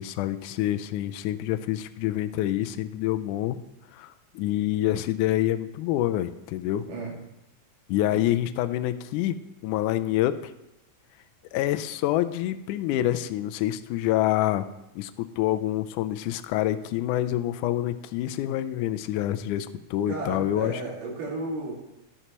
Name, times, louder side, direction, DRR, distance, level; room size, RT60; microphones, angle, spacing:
voice 1, 0.0-3.6 3.9-6.9 7.9-9.4 9.6-10.5 11.5-14.7 15.0-20.8, left 13 dB, 80° left, 11 dB, 1.9 m, -27 dB
voice 2, 6.8-7.2 8.1-8.2 20.1-21.7, right 2 dB, 75° right, -4 dB, 3.8 m, -34 dB
12.5 x 11.0 x 3.0 m, 0.90 s
omnidirectional pair, 3.9 m